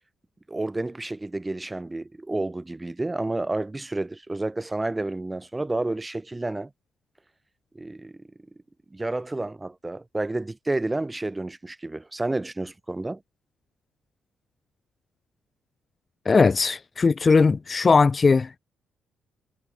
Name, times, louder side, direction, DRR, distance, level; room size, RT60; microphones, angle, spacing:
voice 1, 0.5-6.7 7.8-8.2 8.9-13.2, right 2 dB, 15° right, 2.0 m, -30 dB
voice 2, 16.3-18.6, left 4 dB, 30° left, 0.4 m, -19 dB
cardioid pair, 90°, 0 cm